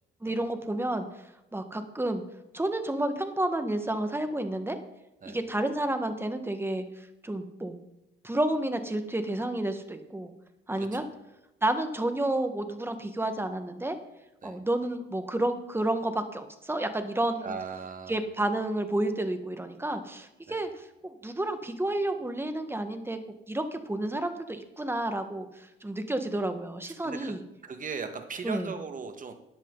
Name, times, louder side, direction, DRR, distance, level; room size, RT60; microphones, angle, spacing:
voice 1, 0.2-1.1 1.5-2.2 2.5-4.8 5.2-7.7 8.2-10.3 10.7-11.0 11.6-14.0 14.4-17.6 18.1-23.2 23.5-27.4 28.4-28.8, right 1 dB, 10° right, 8 dB, 1.6 m, -30 dB
voice 2, 17.4-18.2 20.5-20.6 27.0-27.3 27.6-29.3, right 5 dB, 40° right, 6 dB, 1.8 m, -38 dB
13.5 x 10.5 x 4.0 m, 0.94 s
cardioid pair, 90°, 20 cm